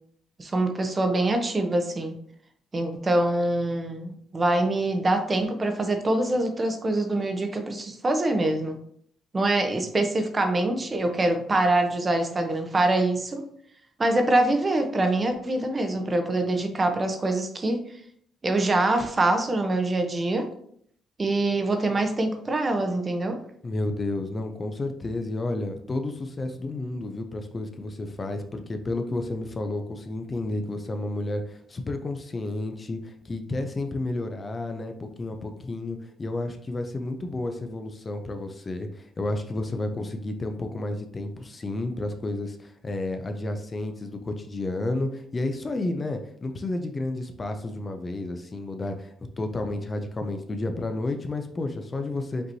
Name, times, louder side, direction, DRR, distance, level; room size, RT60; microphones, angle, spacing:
voice 1, 0.4-2.2 2.7-8.8 9.3-13.4 14.0-17.8 18.4-20.5 21.2-23.4, right 2 dB, 30° right, 5 dB, 0.7 m, -24 dB
voice 2, 23.6-52.5, left 2 dB, 30° left, 6 dB, 0.5 m, -31 dB
5.2 x 3.0 x 2.7 m, 0.65 s
cardioid pair, 90°, 0 cm